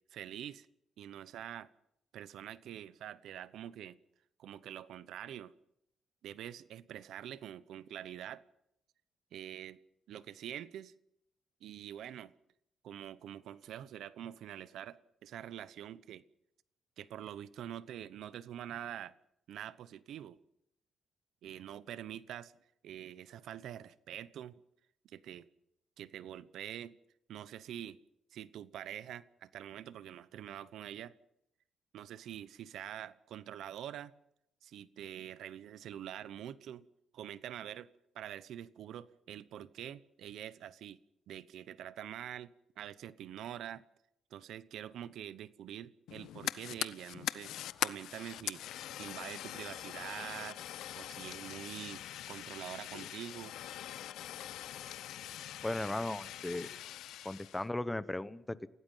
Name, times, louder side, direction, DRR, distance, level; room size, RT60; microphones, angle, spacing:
voice 1, 0.1-0.7 1.0-1.7 2.1-4.0 4.4-5.5 6.2-8.4 9.3-9.8 10.1-10.9 11.6-12.3 12.8-16.2 17.0-19.1 19.5-20.4 21.4-22.5 22.8-24.6 25.0-25.5 26.0-27.0 27.3-28.0 28.3-31.1 31.9-34.1 34.6-36.9 37.1-37.9 38.1-41.0 41.3-43.8 44.3-47.5 47.8-48.6 48.9-50.6 51.0-53.5, right 10 dB, 80° right, 16 dB, 0.9 m, -45 dB
Fire, 46.1-57.6, left 12 dB, 85° left, 0.7 m, -42 dB
voice 2, 55.6-56.7 57.2-58.7, left 1 dB, 10° left, 15 dB, 1.0 m, -36 dB
29.5 x 17.0 x 5.7 m, 0.79 s
cardioid pair, 100°, 0 cm